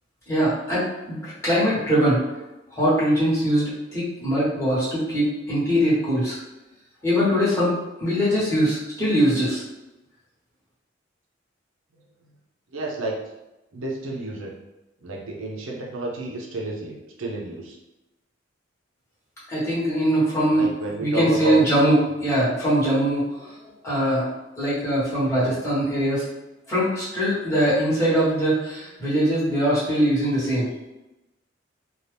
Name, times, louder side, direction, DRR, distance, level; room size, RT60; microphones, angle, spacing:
voice 1, 0.3-2.2 2.7-6.4 7.0-9.6 19.5-20.7 21.0-23.5 23.8-24.2 24.6-26.3 26.7-30.7, equal, 15° left, -11 dB, 1.2 m, -22 dB
voice 2, 12.7-13.2 13.7-14.5 15.0-17.8 20.5-21.6 25.3-25.6, right 2 dB, 80° right, -2 dB, 0.6 m, -31 dB
2.6 x 2.3 x 3.4 m, 0.99 s
head